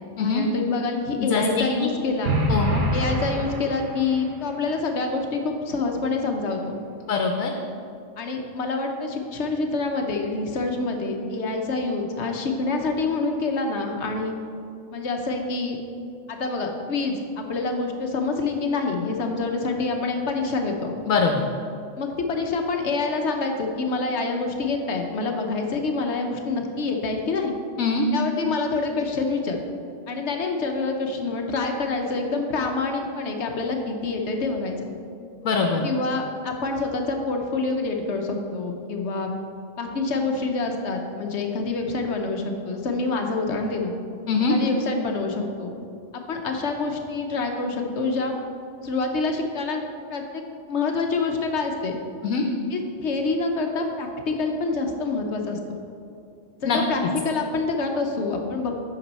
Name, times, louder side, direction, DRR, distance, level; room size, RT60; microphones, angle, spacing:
voice 1, 0.2-2.4 2.9-6.8 8.2-14.4 14.9-15.8 16.3-20.9 22.0-27.5 28.1-29.6 30.1-34.9 35.8-39.4 39.8-43.9 44.5-45.7 46.1-48.4 48.8-49.8 50.1-50.4 50.7-52.0 52.7-55.8 56.6-58.7, left 3 dB, 60° left, 3 dB, 1.0 m, -26 dB
voice 2, 1.2-1.9 2.5-2.8 7.1-7.5 21.1-21.4 27.8-28.1 35.4-35.8 44.3-44.5 52.2-52.4 56.7-56.8, left 5 dB, 90° left, 2 dB, 1.1 m, -23 dB
sound 1, 2.2-4.3, right 1 dB, 65° right, 1.2 m, -25 dB
9.0 x 6.1 x 4.1 m, 2.5 s
omnidirectional pair, 1.4 m